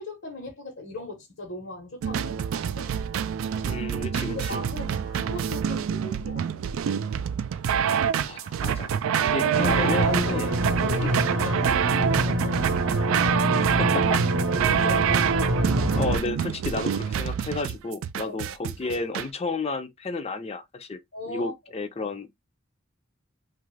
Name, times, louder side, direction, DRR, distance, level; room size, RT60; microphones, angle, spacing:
voice 1, 0.0-2.9 4.3-6.6 9.3-9.8 10.2-12.7 14.6-15.3 18.3-18.4 21.1-21.5, left 2 dB, 70° left, 1.0 m, -38 dB
sound 1, 2.0-19.3, right 8 dB, 85° right, 0.3 m, -26 dB
voice 2, 3.7-4.6 7.8-10.6 10.9-11.2 13.6-14.2 16.0-21.0 21.3-22.3, left 3 dB, 30° left, 0.5 m, -32 dB
sound 2, 9.5-16.2, right 1 dB, 65° right, 0.7 m, -25 dB
2.9 x 2.4 x 3.1 m
head